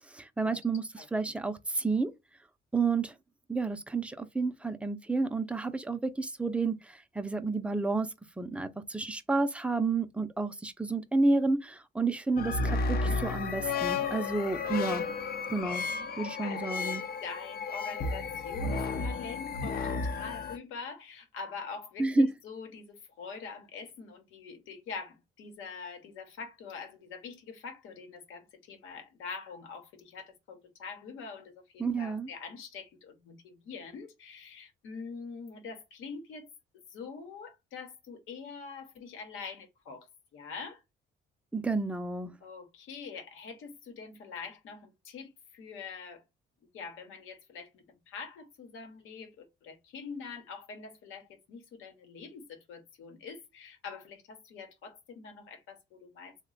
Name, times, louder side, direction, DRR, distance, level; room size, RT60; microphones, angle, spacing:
voice 1, 0.1-2.1 2.7-3.1 3.5-15.0 15.5-15.9 16.2-17.0 22.0-22.3 31.8-32.3 41.5-42.3, right 3 dB, 5° right, 0.4 m, -30 dB
sound 1, 12.4-20.6, left 4 dB, 50° left, 0.5 m, -33 dB
voice 2, 16.4-17.0 17.2-36.5 36.9-40.8 42.4-46.2 46.7-56.4, left 5 dB, 85° left, 1.0 m, -44 dB
3.1 x 2.2 x 3.7 m
cardioid pair, 90°, 20 cm